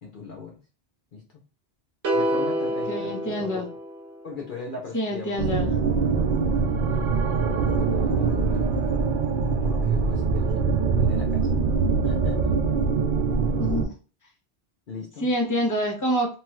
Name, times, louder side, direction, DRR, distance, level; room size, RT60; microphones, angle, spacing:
voice 1, 0.0-0.6 1.1-1.4 2.1-3.7 4.2-5.5 6.9-7.3 7.6-8.9 9.6-11.6 12.0-12.6 14.9-15.3, left 4 dB, 55° left, 0 dB, 0.7 m, -39 dB
sound 1, 2.0-4.4, right 1 dB, 85° right, 1.1 m, -27 dB
voice 2, 2.9-3.7 4.9-5.7 13.6-13.9 15.2-16.3, equal, 20° left, -1 dB, 0.9 m, -26 dB
sound 2, 5.4-13.9, right 5 dB, 60° right, 0.6 m, -23 dB
3.1 x 2.3 x 3.0 m, 0.36 s
omnidirectional pair, 1.1 m